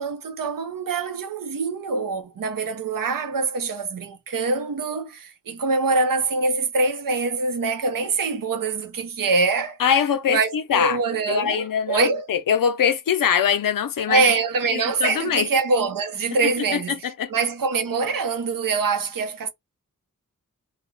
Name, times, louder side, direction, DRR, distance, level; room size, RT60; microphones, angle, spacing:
voice 1, 0.0-9.8 10.3-12.2 14.1-17.0 17.3-19.5, right 4 dB, 80° right, 0.7 m, -24 dB
voice 2, 9.8-11.0 11.3-14.3 14.7-15.5 16.7-16.8 17.2-17.3, left 8 dB, 85° left, 0.5 m, -22 dB
2.3 x 2.2 x 3.0 m
wide cardioid pair, 75°, 32 cm